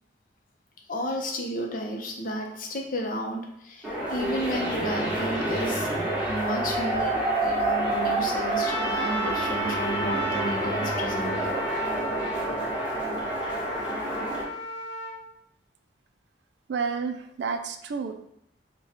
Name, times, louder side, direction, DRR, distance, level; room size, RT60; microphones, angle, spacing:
voice 1, 0.9-5.9 6.3-11.6, equal, 45° left, 1 dB, 0.6 m, -32 dB
sound 1, 3.8-14.4, right 1 dB, 10° right, 1.0 m, -28 dB
Trumpet, 8.6-15.2, right 1 dB, 75° left, 0.8 m, -34 dB
voice 2, 16.7-18.1, right 5 dB, 65° right, 7 dB, 0.3 m, -30 dB
3.5 x 2.2 x 4.2 m, 0.74 s
head